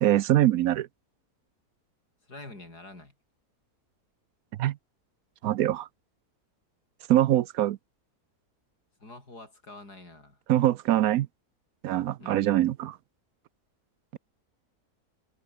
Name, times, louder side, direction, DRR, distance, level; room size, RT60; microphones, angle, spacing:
voice 1, 0.0-0.9 4.6-4.8 5.4-5.9 7.1-7.8 10.5-11.3 11.8-13.0, right 13 dB, 70° right, 1.0 m, -23 dB
voice 2, 2.2-3.1 9.0-10.4 12.2-12.5, left 2 dB, 90° left, 7.2 m, -46 dB
omnidirectional pair, 1.7 m